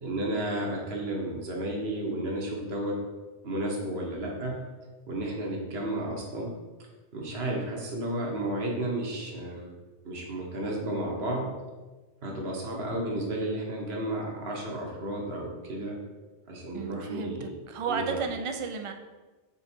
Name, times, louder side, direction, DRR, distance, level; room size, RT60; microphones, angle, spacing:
voice 1, 0.0-3.0 3.4-4.6 5.1-6.5 7.1-9.7 10.0-11.5 12.2-16.0 16.5-17.5 17.9-18.2, right 1 dB, 70° right, -1 dB, 1.4 m, -32 dB
voice 2, 16.7-18.9, right 5 dB, 45° right, 6 dB, 0.4 m, -33 dB
5.5 x 4.0 x 4.4 m, 1.2 s
omnidirectional pair, 1.1 m